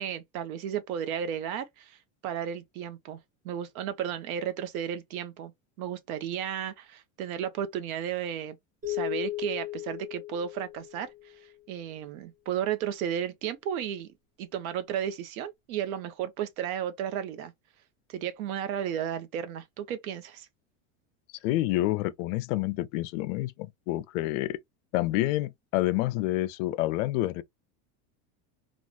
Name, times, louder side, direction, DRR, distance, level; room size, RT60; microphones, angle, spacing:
voice 1, 0.0-3.2 3.4-5.5 5.8-8.6 8.9-11.1 11.7-14.1 14.4-17.5 18.1-20.5, right 9 dB, 75° right, 0.8 m, -33 dB
sound 1, 8.8-11.4, left 16 dB, 20° right, 1.1 m, -36 dB
voice 2, 21.4-24.6 24.9-27.4, left 16 dB, 60° left, 0.5 m, -28 dB
3.4 x 2.4 x 2.3 m
supercardioid pair, 135°, 42 cm